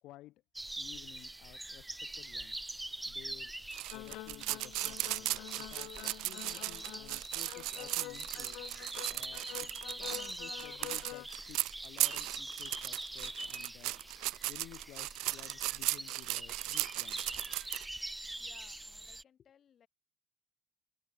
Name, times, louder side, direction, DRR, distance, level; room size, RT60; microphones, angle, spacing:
voice 1, 0.0-0.4 0.8-2.6 3.0-3.5 3.9-8.8 9.1-14.0 14.5-17.3, left 16 dB, 60° left, 2.3 m, -55 dB
sound 1, 0.5-19.2, right 1 dB, 5° right, 1.8 m, -44 dB
sound 2, 3.7-17.9, right 21 dB, 75° right, 0.5 m, -37 dB
sound 3, 3.9-11.3, left 22 dB, 75° left, 1.4 m, -47 dB
voice 2, 18.4-19.9, left 8 dB, 35° left, 5.1 m, -64 dB
cardioid pair, 160°, 0 cm